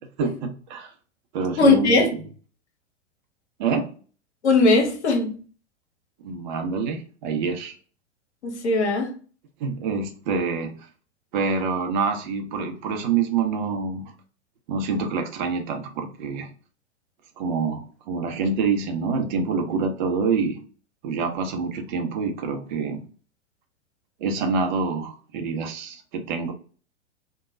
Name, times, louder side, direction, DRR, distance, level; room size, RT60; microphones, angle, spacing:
voice 1, 0.2-0.9 1.3-2.0 3.6-3.9 6.2-7.8 9.6-10.9 11.3-14.1 14.7-16.5 17.4-20.6 21.0-23.0 24.2-26.5, right 5 dB, 40° right, 0.7 m, -26 dB
voice 2, 1.6-2.1 4.4-5.4 8.4-9.1, left 3 dB, 65° left, 1.0 m, -19 dB
3.1 x 2.2 x 3.6 m
figure-of-eight pair, 105°, 37 cm